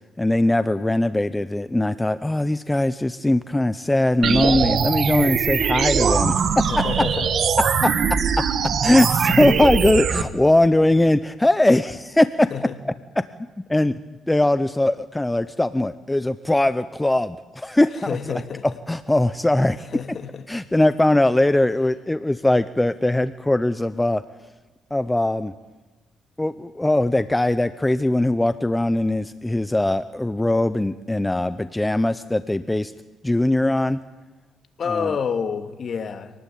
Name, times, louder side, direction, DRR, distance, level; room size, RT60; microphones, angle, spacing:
voice 1, 0.2-6.8 7.8-7.9 8.8-12.5 12.8-12.9 13.7-13.9 14.3-18.3 18.9-19.9 20.5-24.2 24.9-25.5 26.4-32.9 33.2-34.0 34.9-35.1, left 1 dB, 10° left, 13 dB, 0.8 m, -20 dB
sound 1, 4.2-10.2, right 6 dB, 60° right, 2.0 m, -21 dB
voice 2, 6.7-7.3 12.5-12.8 18.1-18.7 19.9-20.4 34.8-36.3, left 6 dB, 50° left, 8 dB, 2.5 m, -28 dB
27.0 x 19.5 x 8.7 m, 1.2 s
cardioid pair, 90°, 0 cm